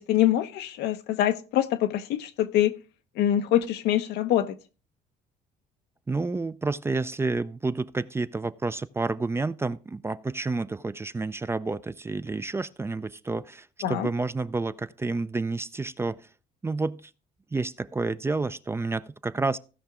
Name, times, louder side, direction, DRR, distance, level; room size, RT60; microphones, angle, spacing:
voice 1, 0.0-2.7 3.2-4.6 13.8-14.1, left 12 dB, 85° left, 0.8 m, -24 dB
voice 2, 6.1-16.2 16.6-17.0 17.5-19.6, right 3 dB, 15° right, 0.4 m, -29 dB
16.0 x 5.8 x 3.7 m
cardioid pair, 110°, 17 cm